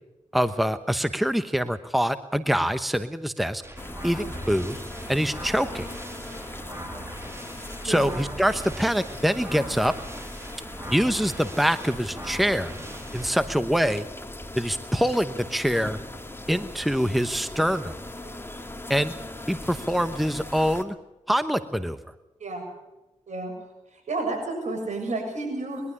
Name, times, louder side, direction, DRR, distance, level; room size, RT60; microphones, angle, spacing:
voice 1, 0.3-3.6 4.0-4.8 5.1-5.9 7.8-9.9 10.9-12.8 13.1-14.1 14.5-16.0 16.5-18.0 18.9-19.1 19.5-20.9 21.3-22.0, equal, ahead, 12 dB, 1.1 m, -24 dB
sound 1, 3.6-13.5, right 1 dB, 20° right, 3.7 m, -41 dB
sound 2, 3.8-20.8, left 1 dB, 20° left, 2.2 m, -39 dB
voice 2, 23.9-25.8, right 2 dB, 70° right, 2 dB, 7.3 m, -31 dB
21.5 x 12.5 x 9.9 m, 1.0 s
cardioid pair, 40°, 13 cm